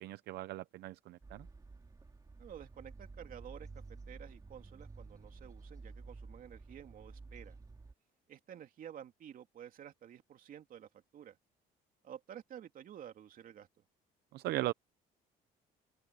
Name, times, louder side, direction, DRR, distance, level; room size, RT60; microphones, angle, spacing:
voice 1, 0.0-1.5 14.3-14.7, right 16 dB, 80° right, 0.7 m, -38 dB
sound 1, 1.2-7.9, right 3 dB, 20° right, 2.6 m, -52 dB
voice 2, 2.4-3.7 4.1-7.6 8.3-11.4 12.0-13.7, right 9 dB, 55° right, 2.8 m, -51 dB
open air
cardioid pair, 110°, 17 cm